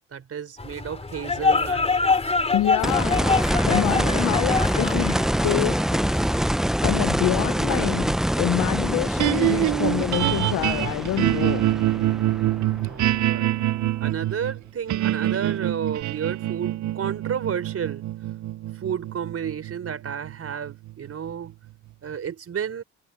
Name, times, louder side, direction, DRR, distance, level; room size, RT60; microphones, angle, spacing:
voice 1, 0.1-1.9 12.8-13.6 14.0-18.1 18.8-21.5 22.0-22.8, right 8 dB, 50° right, 5.0 m, -31 dB
sound 1, 0.6-6.4, left 4 dB, 20° left, 3.1 m, -25 dB
voice 2, 2.5-3.4 3.6-11.6 12.0-12.1, left 15 dB, 85° left, 0.7 m, -27 dB
sound 2, 2.8-13.7 16.0-16.1, equal, ahead, 0.5 m, -25 dB
sound 3, 9.2-21.5, right 15 dB, 70° right, 0.7 m, -25 dB
cardioid pair, 90°, 30 cm